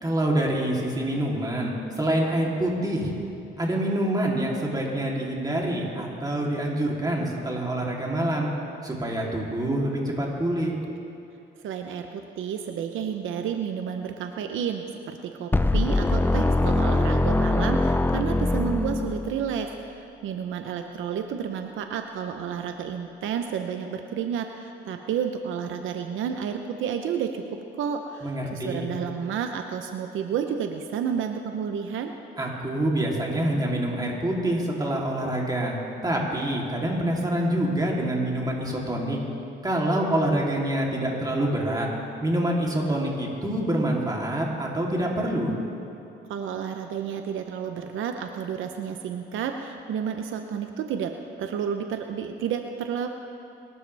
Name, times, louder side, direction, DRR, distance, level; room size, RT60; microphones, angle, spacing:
voice 1, 0.0-3.1 3.6-8.5 8.8-10.7 28.2-28.9 32.4-35.8 36.0-39.2 39.6-41.9 42.2-45.5, right 1 dB, 20° right, -3 dB, 3.2 m, -26 dB
voice 2, 11.6-32.1 46.3-53.1, right 7 dB, 80° right, 5 dB, 0.8 m, -31 dB
sound 1, 15.5-19.5, left 2 dB, 10° left, 0.6 m, -23 dB
24.0 x 12.5 x 3.5 m, 2.7 s
cardioid pair, 90°, 20 cm